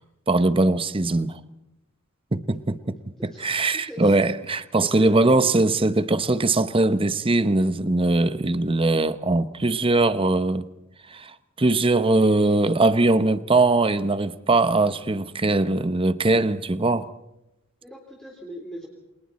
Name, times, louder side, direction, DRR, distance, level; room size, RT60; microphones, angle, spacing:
voice 1, 0.3-1.4 2.3-3.0 3.2-10.6 11.1-17.1, right 2 dB, 25° right, 0.9 m, -21 dB
voice 2, 3.2-4.2 4.8-5.5 17.8-18.9, equal, 5° left, 3.6 m, -39 dB
29.0 x 27.0 x 4.2 m
head